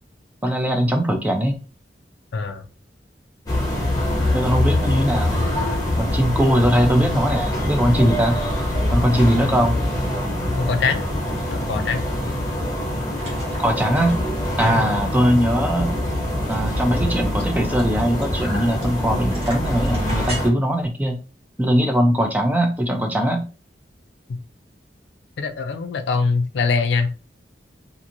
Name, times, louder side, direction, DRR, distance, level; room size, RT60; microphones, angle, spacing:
voice 1, 0.4-1.5 4.3-5.5 6.0-8.4 8.9-9.8 13.6-14.1 14.6-15.9 16.5-21.2 21.6-23.4, equal, 10° right, 4 dB, 0.4 m, -20 dB
voice 2, 2.3-2.6 9.1-9.5 10.6-11.1 11.5-12.1 14.6-15.0 25.4-27.2, left 4 dB, 80° left, 8 dB, 0.4 m, -23 dB
sound 1, 3.5-20.5, left 1 dB, 20° left, 0.9 m, -24 dB
sound 2, 11.3-11.4 11.7-12.7 13.1-14.6 15.0-15.1 15.3-15.4 15.8-19.0 19.3-20.4, right 2 dB, 35° right, 1.2 m, -38 dB
2.9 x 2.5 x 2.5 m, 0.34 s
head